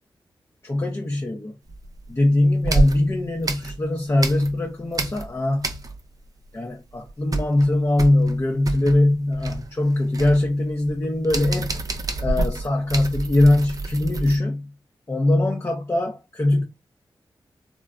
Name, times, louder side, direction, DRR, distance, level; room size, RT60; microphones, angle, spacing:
voice 1, 0.6-1.5 2.1-5.7 6.5-11.8 12.2-14.7 15.1-16.6, left 1 dB, 30° left, 0.6 m, -21 dB
sound 1, 1.7-2.2 2.6-4.7 4.9-6.2 6.5-6.6 6.9-14.4, right 2 dB, 45° right, 0.6 m, -28 dB
3.6 x 2.1 x 2.4 m
cardioid pair, 50°, 9 cm